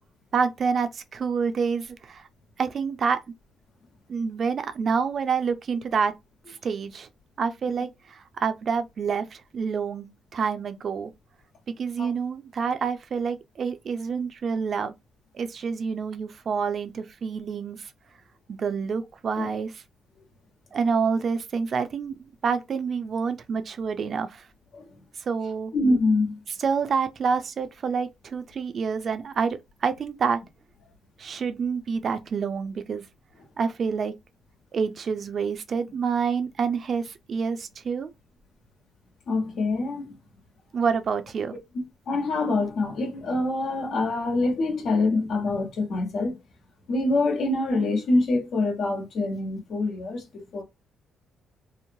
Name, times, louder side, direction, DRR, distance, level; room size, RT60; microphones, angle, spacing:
voice 1, 0.3-2.3 2.6-3.2 4.1-6.1 6.5-7.1 7.4-11.1 11.7-14.9 15.3-17.9 18.5-19.8 20.7-22.2 22.4-24.4 25.3-25.7 26.6-30.4 31.2-33.1 33.6-34.1 34.7-38.1 40.7-41.6, right 5 dB, 50° right, 0.4 m, -27 dB
voice 2, 25.7-26.4 39.3-40.2 42.1-46.4 46.9-50.6, left 2 dB, 70° left, 1.1 m, -25 dB
3.0 x 2.1 x 2.6 m
cardioid pair, 90°, 0 cm